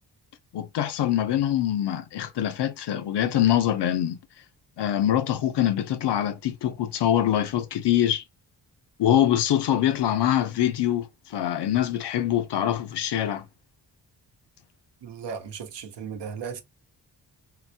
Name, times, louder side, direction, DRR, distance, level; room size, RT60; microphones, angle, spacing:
voice 1, 0.5-4.2 4.8-8.2 9.0-13.5, left 11 dB, 75° left, 0.6 m, -24 dB
voice 2, 15.0-16.6, right 6 dB, 80° right, 0.9 m, -36 dB
3.9 x 2.1 x 2.7 m
cardioid pair, 75°, 41 cm